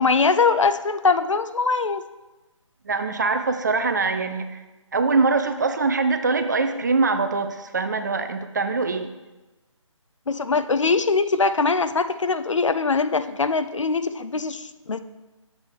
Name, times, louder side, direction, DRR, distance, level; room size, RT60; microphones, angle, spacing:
voice 1, 0.0-2.0 10.3-15.0, left 4 dB, 65° left, 12 dB, 0.5 m, -22 dB
voice 2, 2.8-4.6 4.9-9.1, right 4 dB, 35° right, 8 dB, 0.5 m, -23 dB
7.3 x 4.1 x 6.5 m, 1.1 s
figure-of-eight pair, 150°, 17 cm